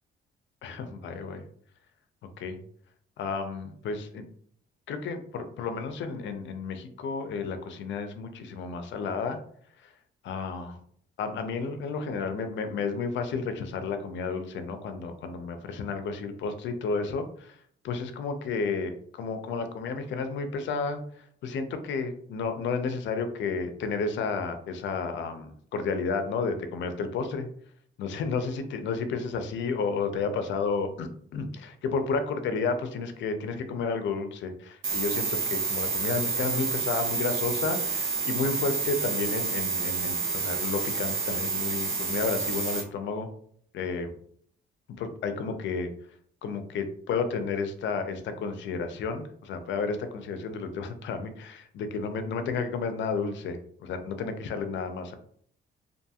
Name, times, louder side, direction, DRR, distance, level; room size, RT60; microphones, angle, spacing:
voice 1, 0.6-1.4 2.4-2.6 3.2-4.3 4.9-9.4 9.8-9.9 10.2-10.8 11.2-17.6 17.8-27.5 28.0-43.3 43.7-44.1 45.0-45.9 46.4-55.1, left 4 dB, 70° left, 8 dB, 0.5 m, -32 dB
sound 1, 34.8-42.8, right 4 dB, 80° right, 1.0 m, -29 dB
2.7 x 2.6 x 2.3 m, 0.62 s
cardioid pair, 90°, 20 cm